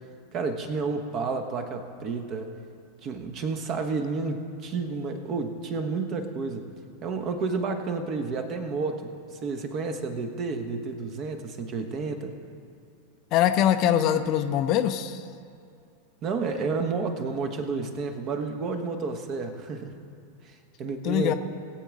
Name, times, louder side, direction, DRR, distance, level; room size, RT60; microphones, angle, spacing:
voice 1, 0.3-2.5 3.0-6.7 7.0-12.4 16.2-20.0 20.4-21.3, right 4 dB, 35° right, 6 dB, 1.2 m, -31 dB
voice 2, 13.3-15.2 21.0-21.3, left 10 dB, 40° left, 9 dB, 0.6 m, -23 dB
21.0 x 8.0 x 3.7 m, 2.5 s
figure-of-eight pair, 90°, 0 cm